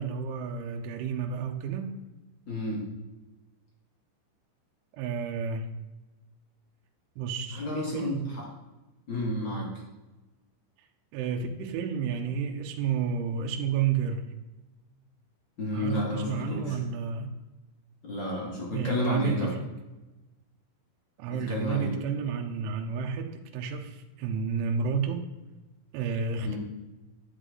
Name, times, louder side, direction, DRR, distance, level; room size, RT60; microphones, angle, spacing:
voice 1, 0.0-1.9 4.9-5.7 7.2-8.3 11.1-14.3 15.7-17.3 18.7-19.6 21.2-25.2 25.9-26.6, right 6 dB, 80° right, 3 dB, 3.2 m, -31 dB
voice 2, 2.5-2.8 7.5-8.5 9.1-9.7 15.6-16.8 18.0-19.5 21.3-21.9 26.4-26.6, left 1 dB, 45° left, -3 dB, 1.5 m, -31 dB
11.0 x 8.2 x 3.8 m, 1.1 s
omnidirectional pair, 5.6 m